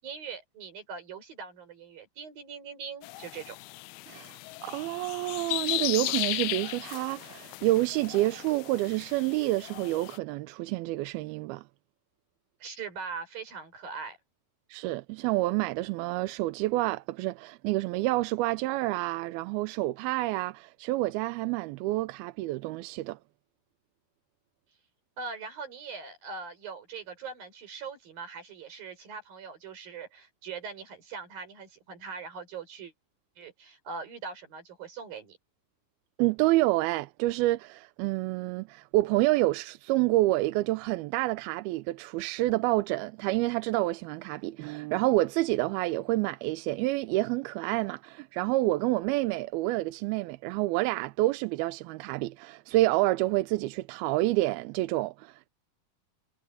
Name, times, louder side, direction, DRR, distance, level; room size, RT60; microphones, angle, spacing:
voice 1, 0.0-3.6 12.6-14.2 25.2-32.9 33.4-35.4, right 5 dB, 65° right, 7.3 m, -41 dB
sound 1, 3.0-10.2, left 21 dB, 90° left, 2.5 m, -36 dB
voice 2, 4.1-11.6 14.7-23.2 36.2-55.5, right 18 dB, 90° right, 2.5 m, -28 dB
omnidirectional pair, 4.3 m